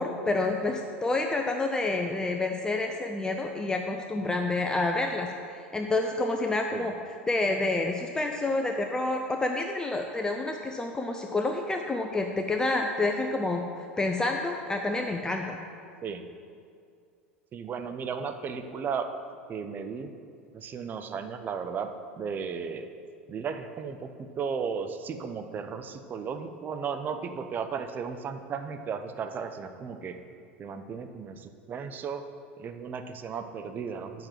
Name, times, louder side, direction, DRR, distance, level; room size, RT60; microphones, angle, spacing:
voice 1, 0.0-5.3 5.7-6.9 7.3-15.6, left 2 dB, 10° left, 3 dB, 0.5 m, -28 dB
voice 2, 17.5-19.1 19.5-20.1 20.5-21.9 22.2-22.9 23.3-30.2 30.6-32.2 32.6-34.3, right 6 dB, 30° right, 7 dB, 0.7 m, -35 dB
6.7 x 5.9 x 7.3 m, 2.3 s
figure-of-eight pair, 80°, 7 cm